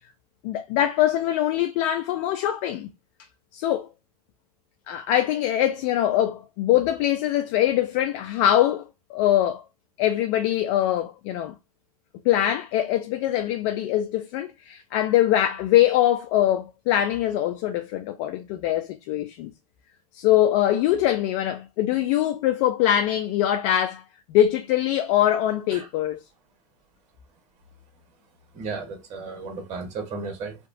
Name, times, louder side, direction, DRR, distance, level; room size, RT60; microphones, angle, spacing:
voice 1, 0.4-2.9 3.5-3.9 4.9-9.6 10.0-11.5 12.3-19.5 20.1-24.0 24.3-26.2, left 12 dB, 50° left, 0.4 m, -23 dB
voice 2, 28.5-30.5, right 4 dB, 35° right, 1.2 m, -34 dB
2.9 x 2.3 x 2.5 m
hypercardioid pair, 105°, 21 cm